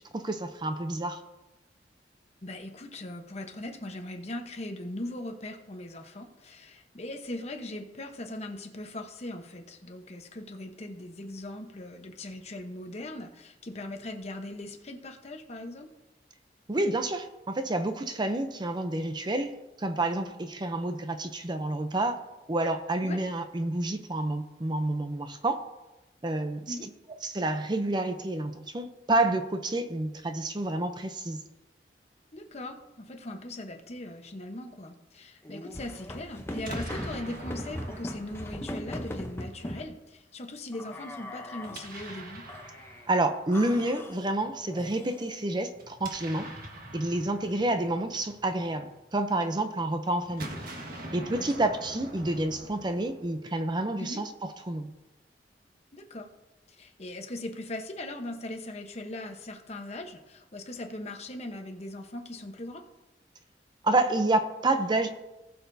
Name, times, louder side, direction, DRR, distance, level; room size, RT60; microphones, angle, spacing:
voice 1, 0.1-1.2 16.7-22.2 22.5-25.6 26.2-26.9 27.2-31.4 43.1-46.5 46.9-50.5 51.1-54.9 63.8-65.1, right 2 dB, 25° right, 8 dB, 0.6 m, -29 dB
voice 2, 2.4-15.9 23.0-23.2 26.7-26.9 32.3-42.4 51.3-51.7 54.0-54.2 55.9-56.3 56.7-62.8, left 1 dB, 40° left, 4 dB, 1.0 m, -40 dB
sound 1, 35.4-39.9 40.7-42.0 42.5-43.1 43.5-45.3, left 1 dB, 15° left, 0.7 m, -39 dB
Explosion, 36.5-39.5 41.6-43.8 45.7-49.2 50.2-53.6, right 1 dB, 55° right, 1.5 m, -45 dB
19.0 x 6.5 x 2.7 m, 1.0 s
head